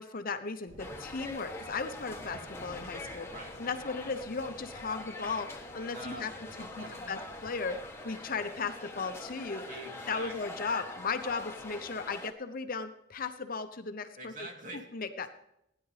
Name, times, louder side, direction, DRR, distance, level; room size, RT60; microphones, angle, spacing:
voice 1, 0.0-3.3 3.6-6.3 6.6-9.6 10.1-14.3 14.9-15.3, left 4 dB, 50° left, 9 dB, 0.9 m, -36 dB
sound 1, 0.7-12.2, equal, 80° right, 5.3 m, -55 dB
sound 2, 0.8-12.3, left 2 dB, 15° left, 1.2 m, -44 dB
voice 2, 5.9-7.2 9.7-10.3 14.2-14.8, right 2 dB, 45° right, 2 dB, 2.4 m, -45 dB
17.5 x 10.0 x 3.3 m, 0.78 s
head